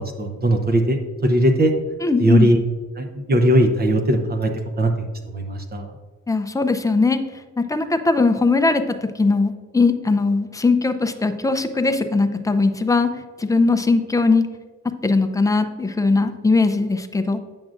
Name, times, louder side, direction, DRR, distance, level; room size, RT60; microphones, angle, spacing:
voice 1, 0.0-1.7 2.2-2.6 3.0-5.9, right 1 dB, 30° right, 5 dB, 0.7 m, -19 dB
voice 2, 2.0-2.5 6.3-7.2 7.6-8.8 9.2-13.1 13.4-14.5 15.0-17.4, left 3 dB, 10° left, 8 dB, 0.5 m, -19 dB
8.9 x 6.0 x 2.5 m, 1.4 s
cardioid pair, 90°, 30 cm